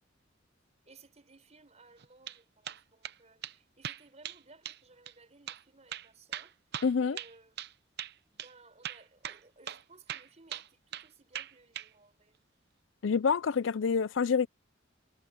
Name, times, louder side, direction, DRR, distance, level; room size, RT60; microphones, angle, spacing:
voice 1, 0.8-6.6 7.0-7.5 8.3-12.4, right 3 dB, 35° right, 5.1 m, -59 dB
sound 1, 2.0-2.4 2.6-3.2 3.4-3.5 3.8-4.4 4.6-4.8 5.1-5.2 5.5-5.6 5.9-7.7 8.0-8.1 8.4-8.5 8.8-9.8 10.1-11.1 11.3-11.9, right 10 dB, 55° right, 0.8 m, -40 dB
voice 2, 6.8-7.2 13.0-14.5, left 6 dB, 70° left, 0.5 m, -27 dB
head